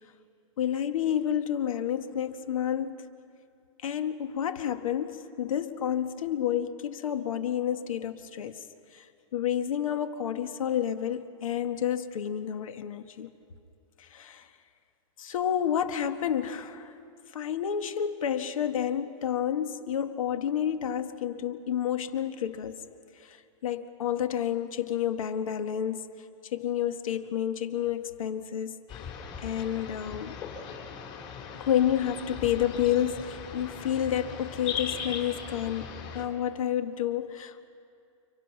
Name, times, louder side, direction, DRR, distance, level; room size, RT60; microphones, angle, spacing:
voice 1, 0.6-3.0 3.8-8.6 8.9-9.0 9.3-13.3 14.0-14.5 15.2-16.9 17.3-22.8 23.2-23.4 23.6-26.1 26.5-28.8 29.4-30.4 31.5-37.7, left 9 dB, 80° left, 8 dB, 1.6 m, -30 dB
sound 1, 28.9-36.2, left 7 dB, 30° left, 3.6 m, -39 dB
30.0 x 26.5 x 5.9 m, 2.5 s
supercardioid pair, 165°, 17 cm